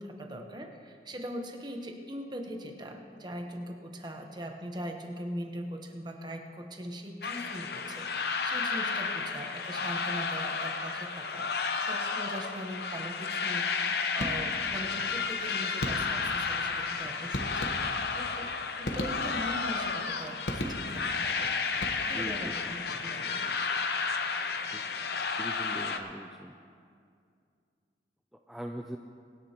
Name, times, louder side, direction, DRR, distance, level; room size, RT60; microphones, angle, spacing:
voice 1, 0.0-13.7 14.1-18.5 18.8-21.8 22.1-22.5 23.0-23.5, equal, 25° right, 4 dB, 1.0 m, -41 dB
sound 1, 7.2-26.0, left 5 dB, 65° left, 0.7 m, -32 dB
sound 2, 14.2-14.8 15.8-16.4 17.3-18.2 18.8-19.6 20.5-21.2 21.7-22.4, left 1 dB, 80° left, 1.2 m, -36 dB
voice 2, 22.1-22.7 24.7-24.8 25.4-26.6 28.3-29.0, equal, ahead, 2 dB, 0.4 m, -41 dB
24.5 x 9.8 x 3.0 m, 2.3 s
head